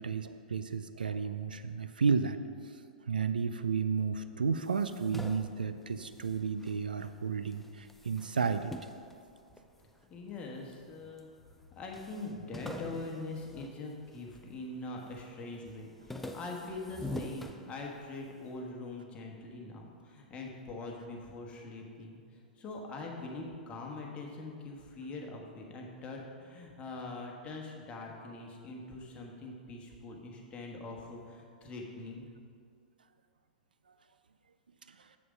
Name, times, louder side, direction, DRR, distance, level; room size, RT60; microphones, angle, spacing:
voice 1, 0.0-2.4 2.6-2.8 3.1-8.7 34.9-35.1, right 5 dB, 75° right, 10 dB, 0.4 m, -32 dB
sound 1, 4.5-7.2 7.5-10.0 10.6-11.3 11.6-11.7 11.9-14.5 14.9-15.3 15.7-18.3, left 1 dB, 5° left, 0.5 m, -45 dB
voice 2, 10.1-11.3 11.8-22.2 22.6-32.3, left 2 dB, 25° left, 0 dB, 1.4 m, -43 dB
7.3 x 6.8 x 5.1 m, 2.3 s
figure-of-eight pair, 105°, 5 cm